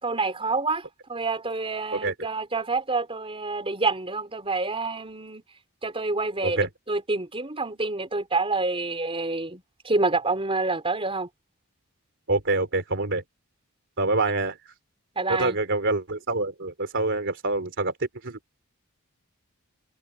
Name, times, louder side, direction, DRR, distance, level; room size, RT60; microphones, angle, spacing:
voice 1, 0.0-5.4 5.8-11.3 15.2-15.6, right 3 dB, 25° right, 4.7 m, -28 dB
voice 2, 12.3-13.2 14.0-14.7 15.3-18.4, right 2 dB, 55° right, 3.4 m, -26 dB
head